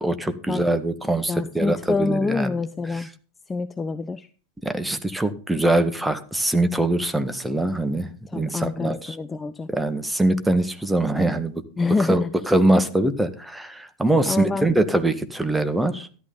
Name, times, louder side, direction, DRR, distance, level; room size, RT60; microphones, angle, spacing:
voice 1, 0.0-2.5 2.9-3.1 4.6-9.2 9.7-11.6 12.1-16.1, right 1 dB, 5° right, 9 dB, 1.5 m, -23 dB
voice 2, 1.3-3.1 3.5-4.3 8.3-9.7 11.8-12.3 14.2-14.7, left 3 dB, 15° left, 13 dB, 0.7 m, -26 dB
13.5 x 11.5 x 3.9 m, 0.39 s
figure-of-eight pair, 90°, 0 cm